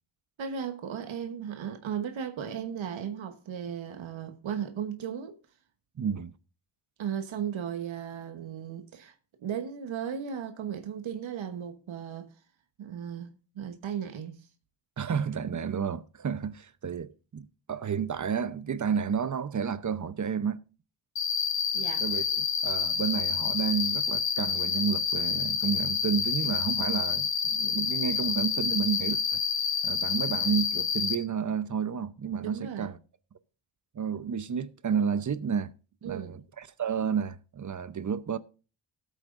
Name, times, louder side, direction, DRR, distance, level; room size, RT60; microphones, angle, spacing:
voice 1, 0.4-5.4 7.0-12.3 12.8-14.5 21.7-22.1 32.4-32.9 36.0-36.4, right 8 dB, 90° right, 1.2 m, -36 dB
voice 2, 6.0-6.3 15.0-20.6 22.0-29.4 29.8-33.0 33.9-35.7 36.0-38.4, right 7 dB, 40° right, 0.8 m, -31 dB
Cricket, 21.2-31.2, left 6 dB, 70° left, 1.5 m, -28 dB
17.5 x 8.4 x 2.6 m
cardioid pair, 90°, 45 cm